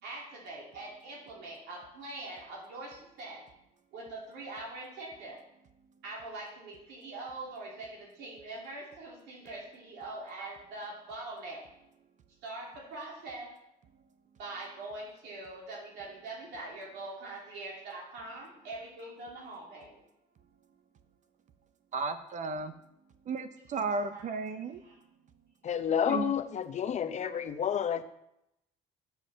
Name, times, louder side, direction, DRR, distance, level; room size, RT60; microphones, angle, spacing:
voice 1, 0.0-3.4 3.9-5.4 6.0-11.6 12.4-13.5 14.4-20.0 24.1-24.3 24.8-25.0, right 2 dB, 85° right, -4 dB, 3.0 m, -43 dB
voice 2, 21.9-22.7 23.3-24.8 26.1-26.3, right 4 dB, 45° right, 10 dB, 0.7 m, -34 dB
voice 3, 25.6-28.0, left 8 dB, 45° left, 10 dB, 0.7 m, -30 dB
7.4 x 7.2 x 6.8 m, 0.84 s
cardioid pair, 110°, 17 cm